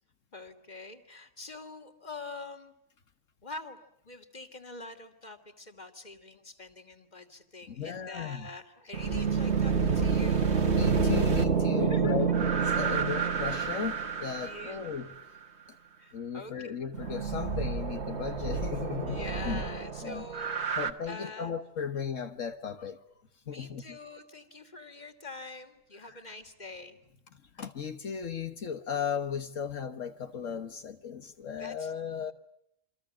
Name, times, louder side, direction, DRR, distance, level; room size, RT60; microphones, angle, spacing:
voice 1, 0.3-2.7 3.4-3.8 4.0-10.6 11.8-12.2 12.8-13.0 14.4-14.8 16.0-16.7 19.1-20.6 21.1-21.6 23.4-27.0 31.6-31.9 32.2-32.3, left 2 dB, 35° left, 2.8 m, -45 dB
voice 2, 7.7-8.5 10.7-15.1 16.1-19.6 20.0-20.2 20.8-23.0 23.5-24.0 26.0-26.2 27.5-32.3, left 7 dB, 75° left, 1.7 m, -36 dB
sound 1, 8.9-15.0 16.9-20.9, right 5 dB, 55° right, 2.0 m, -28 dB
28.5 x 26.0 x 7.3 m
omnidirectional pair, 1.3 m